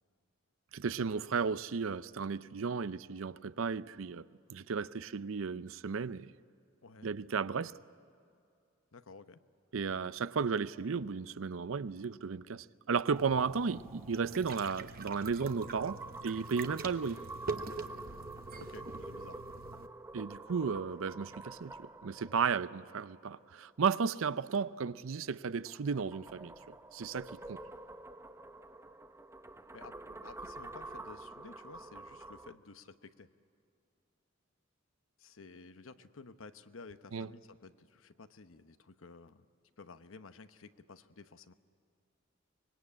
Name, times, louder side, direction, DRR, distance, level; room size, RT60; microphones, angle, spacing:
voice 1, 0.7-4.2 4.5-6.3 7.0-7.7 9.7-17.2 20.1-27.6 37.1-37.3, right 5 dB, 90° right, 0.6 m, -34 dB
voice 2, 8.9-9.4 18.6-19.4 29.7-33.3 35.2-39.5 39.8-41.5, left 4 dB, 90° left, 0.9 m, -53 dB
sound 1, 13.1-23.7 25.6-32.5, right 2 dB, 15° right, 0.7 m, -48 dB
sound 2, 13.2-19.9, right 4 dB, 45° right, 0.9 m, -45 dB
24.5 x 21.5 x 8.6 m
head